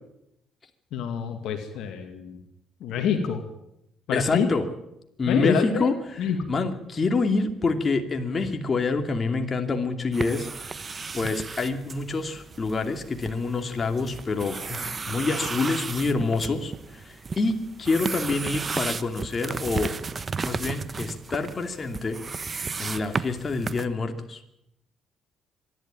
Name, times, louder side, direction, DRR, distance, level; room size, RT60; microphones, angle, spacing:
voice 1, 0.9-2.4 2.8-3.4 4.1-4.5 5.3-5.9 6.2-6.4, left 7 dB, 75° left, 6 dB, 2.2 m, -27 dB
voice 2, 4.1-4.7 5.2-10.8 11.1-19.9 20.4-22.5 22.8-24.4, left 3 dB, 40° left, 5 dB, 2.6 m, -27 dB
sound 1, 10.1-23.9, right 4 dB, 40° right, 1.2 m, -34 dB
24.5 x 12.0 x 8.9 m, 0.83 s
supercardioid pair, 60°, 0 cm